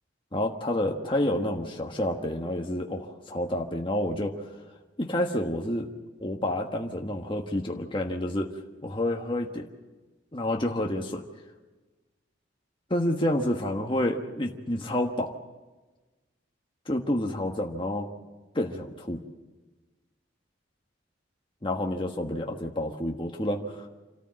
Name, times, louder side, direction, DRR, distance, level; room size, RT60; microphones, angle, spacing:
voice 1, 0.3-4.4 5.0-5.9 6.2-8.5 8.8-9.7 10.3-11.2 12.9-15.4 16.9-18.1 18.5-19.2 21.6-23.9, left 1 dB, 25° left, 1 dB, 1.4 m, -29 dB
27.0 x 13.5 x 7.6 m, 1.2 s
head